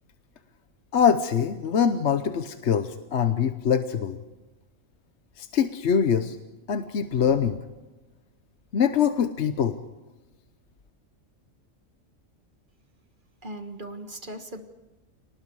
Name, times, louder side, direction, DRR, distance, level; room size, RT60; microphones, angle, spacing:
voice 1, 0.9-4.2 5.4-6.4 6.7-7.6 8.7-9.8, left 7 dB, 60° left, 9 dB, 1.2 m, -23 dB
voice 2, 13.4-14.6, right 1 dB, 40° right, 6 dB, 1.7 m, -38 dB
28.5 x 19.5 x 4.8 m, 1.1 s
omnidirectional pair, 1.3 m